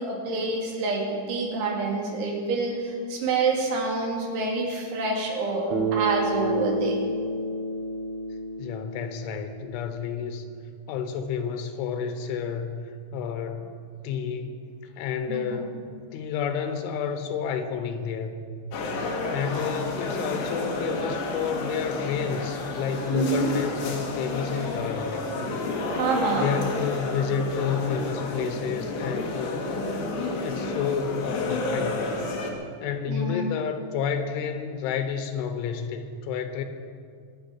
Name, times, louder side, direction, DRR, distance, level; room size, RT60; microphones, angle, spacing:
voice 1, 0.0-7.0 15.3-15.7 23.1-23.5 25.9-26.5 33.1-33.5, right 3 dB, 80° right, -1 dB, 4.9 m, -27 dB
Bass guitar, 5.7-10.1, right 1 dB, 65° right, 3.1 m, -30 dB
voice 2, 8.6-10.5 10.9-13.7 14.0-14.5 15.0-15.8 16.1-18.4 19.2-25.3 26.3-29.7 30.4-32.4 32.8-36.6, left 7 dB, 90° left, 7 dB, 3.6 m, -30 dB
sound 1, 18.7-32.5, left 2 dB, 70° left, 3.7 m, -30 dB
24.0 x 8.9 x 6.0 m, 2.1 s
omnidirectional pair, 5.3 m